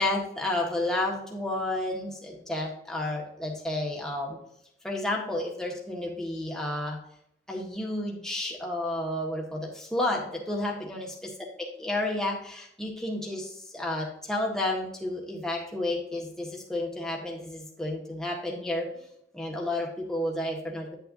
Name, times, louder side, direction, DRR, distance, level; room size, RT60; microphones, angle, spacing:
voice 1, 0.0-4.4 4.8-7.0 7.5-11.1 11.6-18.9 19.3-20.9, left 1 dB, 5° left, -2 dB, 1.7 m, -31 dB
9.9 x 6.8 x 2.7 m, 0.75 s
head